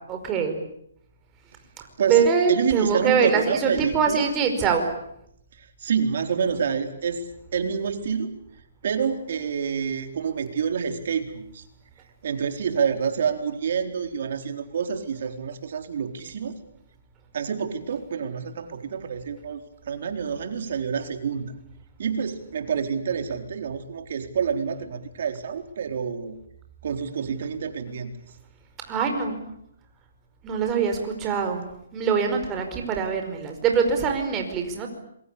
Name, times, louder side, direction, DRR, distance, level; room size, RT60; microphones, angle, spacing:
voice 1, 0.1-0.6 2.1-4.9 28.9-29.5 30.4-31.7 31.9-34.9, right 6 dB, 20° right, 4 dB, 5.1 m, -23 dB
voice 2, 2.0-4.3 5.6-7.2 7.5-8.3 8.8-11.6 12.2-16.5 17.3-21.5 22.0-26.3 26.8-28.1, right 6 dB, 55° right, 7 dB, 4.2 m, -27 dB
27.0 x 23.5 x 8.7 m, 0.73 s
hypercardioid pair, 160°, 0 cm